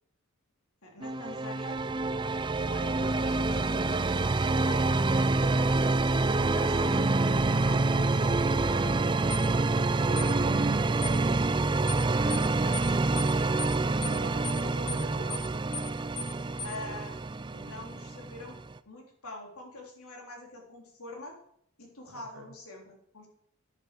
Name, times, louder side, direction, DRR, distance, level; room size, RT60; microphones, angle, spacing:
voice 1, 0.8-2.1 2.6-4.1 4.6-6.0 6.2-9.2 9.9-10.7 12.0-13.0 14.2-14.5 16.6-17.2 17.5-21.4 21.8-23.3, left 2 dB, 75° left, 1 dB, 3.6 m, -45 dB
sound 1, 1.0-18.8, right 3 dB, 20° right, 0.4 m, -27 dB
sound 2, 9.3-9.5 10.2-10.3 11.0-11.2 11.9-12.0 12.3-12.5 12.7-12.9 13.2-13.3 13.6-13.8 14.0-14.2 14.4-14.6 14.9-15.0 15.3-15.5 15.7-15.9 16.2-16.3 16.6-16.8, left 3 dB, 30° left, 1.8 m, -38 dB
voice 2, 14.0-15.5 22.1-22.5, right 2 dB, 55° right, 4 dB, 2.3 m, -42 dB
10.5 x 9.7 x 6.8 m, 0.69 s
head